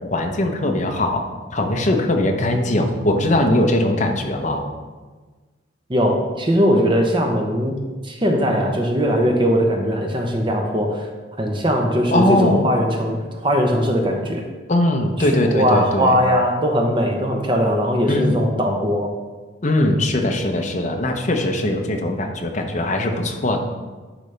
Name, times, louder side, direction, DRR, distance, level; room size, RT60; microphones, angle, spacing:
voice 1, 0.0-4.7 12.1-12.7 14.7-16.2 18.1-18.4 19.6-23.6, left 1 dB, 40° left, 3 dB, 0.7 m, -20 dB
voice 2, 5.9-7.8 8.0-11.1 11.4-14.4 15.2-19.1, equal, 25° right, 1 dB, 0.8 m, -20 dB
10.0 x 4.1 x 3.3 m, 1.3 s
head